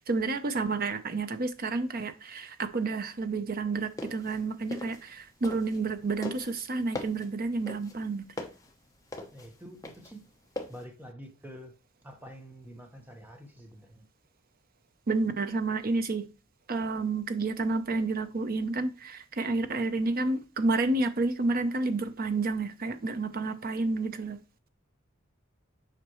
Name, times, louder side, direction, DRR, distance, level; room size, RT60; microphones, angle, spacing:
voice 1, 0.1-8.2 15.1-16.2 16.7-24.4, right 3 dB, 45° right, 0.7 m, -30 dB
sound 1, 3.8-5.9 6.2-10.8, left 2 dB, 15° left, 1.0 m, -40 dB
voice 2, 9.3-10.3 10.7-11.7 12.0-14.1, equal, 10° right, 1.2 m, -47 dB
7.5 x 5.1 x 3.1 m
head